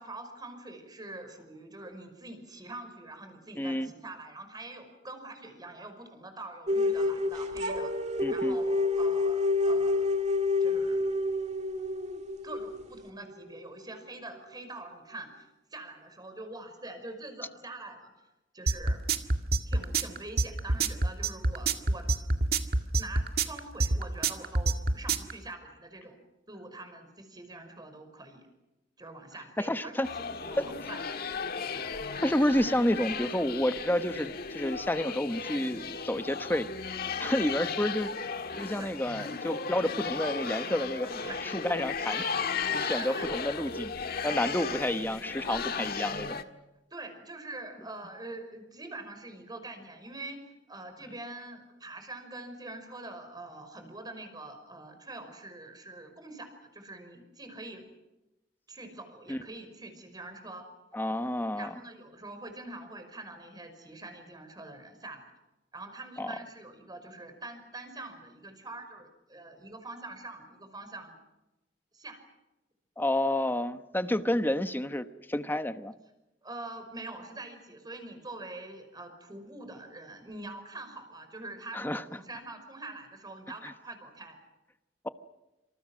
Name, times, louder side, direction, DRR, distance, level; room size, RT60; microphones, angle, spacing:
voice 1, 0.0-7.9 8.3-10.1 10.6-11.0 12.4-18.1 18.5-19.0 19.7-22.1 22.9-28.5 29.0-31.0 38.7-38.9 41.1-41.4 42.8-43.3 46.9-57.9 58.7-60.7 61.5-65.3 65.7-71.1 71.9-72.2 74.0-74.2 76.4-84.4, right 2 dB, 20° right, 7 dB, 5.4 m, -44 dB
voice 2, 3.6-3.9 8.2-8.6 29.6-30.1 30.6-30.7 32.2-36.7 37.2-38.1 38.6-41.1 41.4-42.4 42.7-43.9 44.2-46.4 59.3-59.4 60.9-61.7 66.2-66.3 73.0-75.9 81.7-82.0, left 1 dB, 10° left, 10 dB, 1.1 m, -30 dB
sound 1, 6.7-13.6, left 2 dB, 40° right, 2.1 m, -28 dB
sound 2, 18.7-25.3, right 3 dB, 60° right, 1.9 m, -26 dB
sound 3, 30.0-46.4, left 5 dB, 55° left, 1.7 m, -35 dB
27.5 x 27.0 x 6.3 m, 0.99 s
head